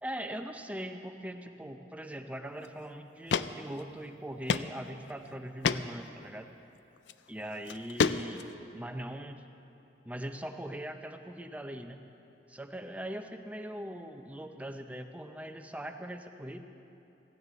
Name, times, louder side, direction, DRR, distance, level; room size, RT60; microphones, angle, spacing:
voice 1, 0.0-6.5 7.3-8.5 8.7-9.4 10.0-12.0 12.5-16.6, right 1 dB, 10° right, 6 dB, 0.6 m, -41 dB
sound 1, 2.6-2.7 3.3-3.5 3.8-3.9 4.5-4.7 5.1-5.2 5.6-5.8 7.0-7.1 7.7-8.5, left 6 dB, 85° left, 0.4 m, -28 dB
16.0 x 16.0 x 4.1 m, 2.8 s
head